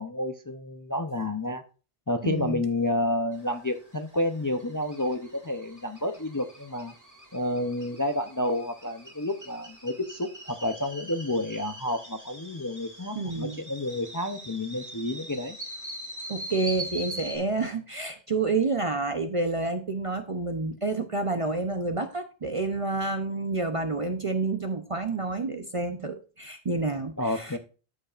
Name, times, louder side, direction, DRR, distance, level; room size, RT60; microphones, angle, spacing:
voice 1, 0.0-1.6 2.1-6.9 7.3-15.6 27.2-27.6, left 1 dB, 30° left, 0.4 m, -30 dB
voice 2, 2.2-2.6 13.2-13.6 16.3-27.6, right 3 dB, 35° right, 0.6 m, -29 dB
sound 1, 3.3-17.4, right 1 dB, 15° right, 1.8 m, -43 dB
13.0 x 5.4 x 2.4 m
omnidirectional pair, 1.2 m